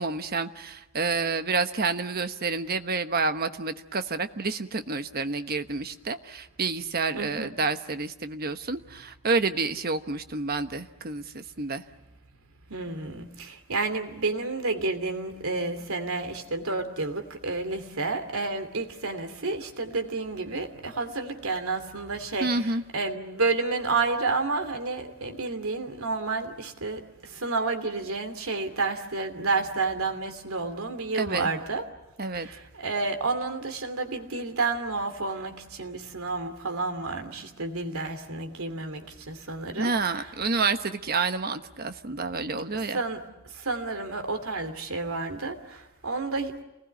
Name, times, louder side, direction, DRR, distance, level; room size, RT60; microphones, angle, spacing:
voice 1, 0.0-11.8 22.4-22.8 31.1-31.5 32.2-32.5 39.8-43.0, right 4 dB, 45° right, 1.2 m, -29 dB
voice 2, 7.1-7.5 12.7-31.8 32.3-40.3 42.7-46.6, right 3 dB, 80° right, 2.8 m, -30 dB
29.0 x 20.0 x 9.5 m
head